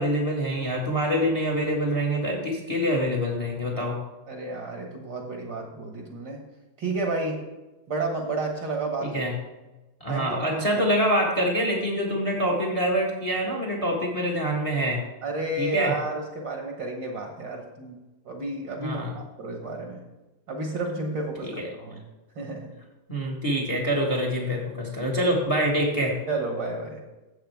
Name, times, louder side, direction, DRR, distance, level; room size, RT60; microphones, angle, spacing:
voice 1, 0.0-4.0 9.0-9.3 10.0-15.0 15.6-15.9 18.8-19.2 21.4-21.7 23.1-26.2, equal, 30° left, -1 dB, 0.6 m, -25 dB
voice 2, 4.3-6.4 6.8-7.4 7.9-9.1 10.1-10.8 15.2-18.0 18.2-20.0 20.5-22.0 22.3-22.7 26.3-27.0, right 2 dB, 55° right, 1 dB, 1.2 m, -31 dB
13.0 x 8.1 x 3.5 m, 1.1 s
omnidirectional pair, 3.9 m